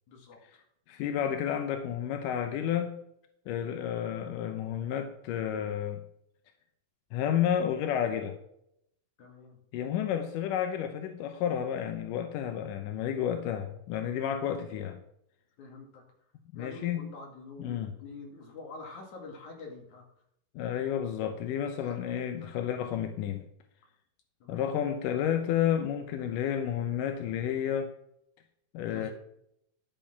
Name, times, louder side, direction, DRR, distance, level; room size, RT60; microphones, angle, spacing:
voice 1, 0.1-0.6 9.2-9.6 13.3-13.5 14.6-14.8 15.6-16.0 16.5-20.0 21.8-22.5 24.4-24.8 28.8-29.1, left 3 dB, 55° left, 1 dB, 3.3 m, -47 dB
voice 2, 0.9-2.9 3.5-6.0 7.1-8.4 9.7-15.0 16.5-17.1 17.6-17.9 20.6-23.4 24.5-27.9 28.7-29.1, left 9 dB, 75° left, 6 dB, 2.0 m, -31 dB
10.5 x 6.9 x 5.7 m, 0.73 s
omnidirectional pair, 4.5 m